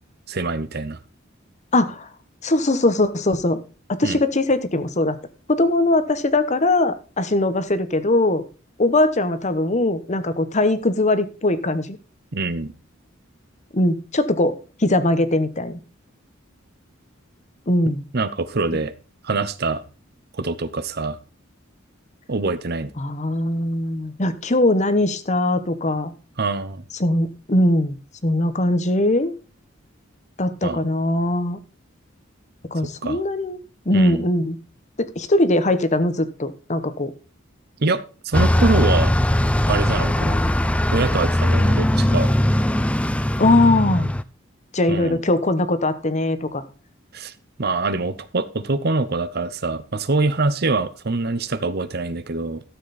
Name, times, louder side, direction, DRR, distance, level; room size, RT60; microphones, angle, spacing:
voice 1, 0.3-1.0 4.0-4.2 12.3-12.7 18.1-18.9 19.2-19.8 20.3-21.2 22.3-22.9 26.4-26.8 30.6-30.8 33.0-33.2 33.9-34.3 37.8-39.1 39.7-40.4 40.9-42.3 44.9-45.2 47.1-47.3 47.6-52.6, right 3 dB, 50° right, 14 dB, 0.9 m, -24 dB
voice 2, 1.7-2.1 2.4-3.6 3.9-5.2 5.5-8.4 8.8-12.0 13.7-15.8 17.7-18.1 23.0-26.1 27.0-28.0 28.2-29.3 30.4-31.6 32.7-33.6 33.9-34.6 35.0-37.1 43.4-44.1 44.7-46.6, left 1 dB, 35° left, 12 dB, 1.0 m, -20 dB
Bus, 38.3-44.2, left 1 dB, 5° left, 0.4 m, -20 dB
13.0 x 7.6 x 4.2 m, 0.34 s
head